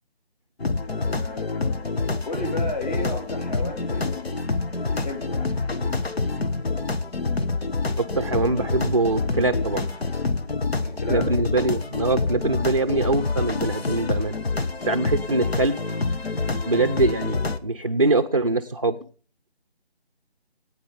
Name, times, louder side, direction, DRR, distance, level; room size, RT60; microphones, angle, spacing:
sound 1, 0.6-17.6, left 3 dB, 70° left, 1.2 m, -27 dB
voice 1, 0.9-1.9 2.3-4.4 4.8-5.5 10.8-11.3, left 1 dB, 40° left, 4 dB, 3.9 m, -34 dB
voice 2, 8.0-9.8 11.1-14.3 14.8-15.8 16.7-19.0, right 2 dB, 30° right, 7 dB, 0.5 m, -23 dB
18.0 x 9.3 x 5.2 m, 0.41 s
figure-of-eight pair, 165°, 32 cm